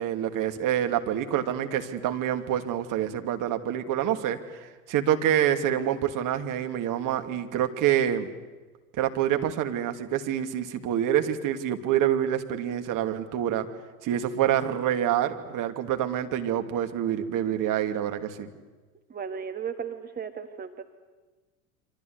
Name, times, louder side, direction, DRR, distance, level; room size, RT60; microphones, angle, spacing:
voice 1, 0.0-8.3 9.0-13.7 14.0-18.5, right 10 dB, 45° right, 6 dB, 2.7 m, -27 dB
voice 2, 19.1-20.8, right 7 dB, 20° right, 7 dB, 1.6 m, -35 dB
28.0 x 25.5 x 8.2 m, 1.3 s
hypercardioid pair, 80°, 45 cm